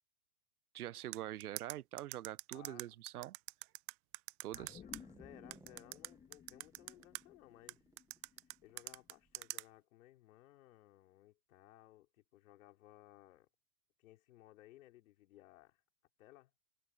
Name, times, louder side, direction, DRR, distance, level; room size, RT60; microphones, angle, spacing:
voice 1, 0.7-3.4 4.4-4.8, right 13 dB, 90° right, 0.7 m, -45 dB
sound 1, 1.1-5.0 5.5-7.2 7.7-9.6, right 27 dB, 35° right, 0.5 m, -44 dB
voice 2, 2.5-2.8 4.5-7.8 8.6-13.5 14.0-15.8 16.2-16.5, left 16 dB, 65° left, 4.7 m, -61 dB
sound 2, 4.5-9.1 9.5-9.6, left 7 dB, 15° left, 1.4 m, -58 dB
sound 3, 4.7-9.4, right 3 dB, 5° right, 0.8 m, -65 dB
hypercardioid pair, 120°, 43 cm